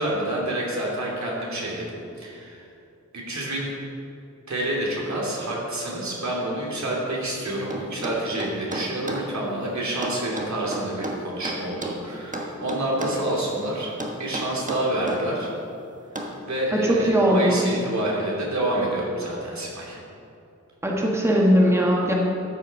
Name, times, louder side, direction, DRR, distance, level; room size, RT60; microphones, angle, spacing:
voice 1, 0.0-1.9 2.2-2.7 3.1-3.7 4.5-13.9 14.2-15.5 16.5-20.0, right 1 dB, 65° right, -3 dB, 2.9 m, -28 dB
sound 1, 7.7-9.3 10.0-12.0 12.3-13.3 14.0-15.3 16.2-16.4, right 1 dB, 25° right, 1.3 m, -32 dB
voice 2, 16.7-17.6 20.8-22.1, equal, 10° right, -2 dB, 1.5 m, -20 dB
13.0 x 7.3 x 5.4 m, 2.6 s
wide cardioid pair, 85°, 30 cm